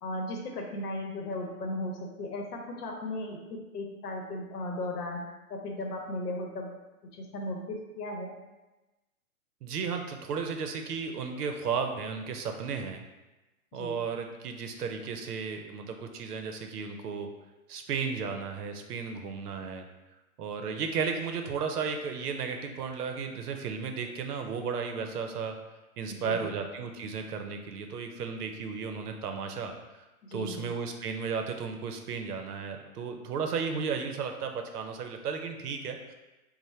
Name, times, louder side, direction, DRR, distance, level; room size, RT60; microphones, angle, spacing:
voice 1, 0.0-5.2 5.5-6.7 7.1-8.3 13.7-14.0 26.1-26.5 30.2-30.7, left 1 dB, 85° left, 2 dB, 0.8 m, -36 dB
voice 2, 9.6-13.0 13.7-17.3 17.7-19.9 20.4-25.6 26.0-29.7 30.3-36.0, right 5 dB, 90° right, 5 dB, 0.7 m, -34 dB
3.1 x 2.1 x 4.2 m, 1.1 s
hypercardioid pair, 175°, 45 cm